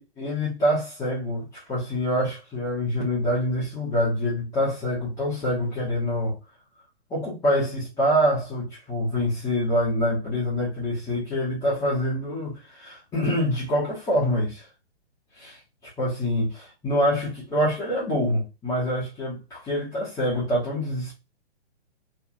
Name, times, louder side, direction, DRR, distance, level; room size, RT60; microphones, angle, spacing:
voice 1, 0.0-6.4 7.1-14.7 15.4-21.1, equal, 10° left, 0.9 m, -26 dB
3.0 x 2.5 x 2.5 m
figure-of-eight pair, 120°, 33 cm